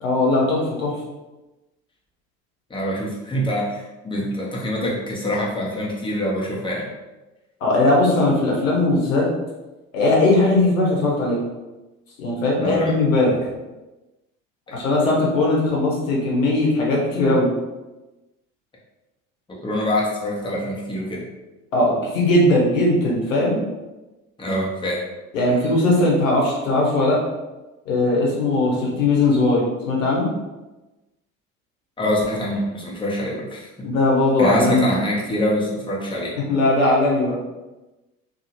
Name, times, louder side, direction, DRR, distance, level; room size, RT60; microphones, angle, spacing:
voice 1, 0.0-0.9 7.6-9.3 9.9-11.4 12.2-13.3 14.7-17.5 21.7-23.6 25.3-27.2 27.9-30.3 33.8-34.9 36.5-37.3, left 2 dB, 75° left, -3 dB, 0.9 m, -19 dB
voice 2, 2.7-6.9 12.6-12.9 14.7-14.8 19.5-21.3 24.4-25.0 25.5-25.6 32.0-33.7 34.4-36.3, equal, 15° left, -4 dB, 0.8 m, -25 dB
2.7 x 2.4 x 2.9 m, 1.1 s
figure-of-eight pair, 60°, 39 cm